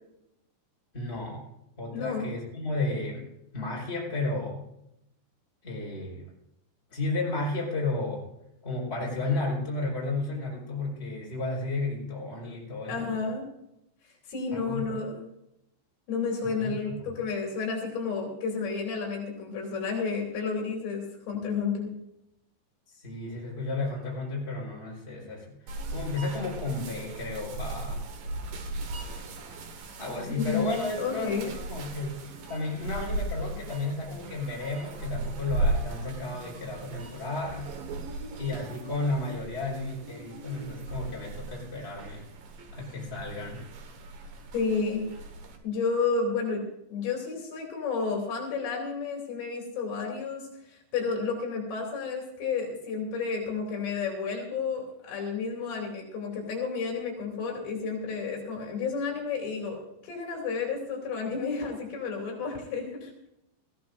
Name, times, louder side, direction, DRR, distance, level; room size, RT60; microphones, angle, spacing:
voice 1, 0.9-1.4 1.8-3.3 3.5-4.6 5.6-6.2 6.9-8.2 8.6-13.1 14.5-14.9 16.4-17.1 22.9-28.1 30.0-32.2 32.5-37.7 38.4-42.3 42.7-43.6, left 2 dB, 15° left, -3 dB, 4.8 m, -33 dB
voice 2, 1.9-2.3 12.9-13.5 14.3-15.3 16.1-21.9 30.3-30.6 31.0-31.5 44.5-45.1 45.6-63.1, left 5 dB, 70° left, 0 dB, 5.0 m, -31 dB
sound 1, 25.7-45.6, right 2 dB, 60° right, 2.8 m, -37 dB
19.5 x 15.5 x 2.6 m, 0.82 s
omnidirectional pair, 5.3 m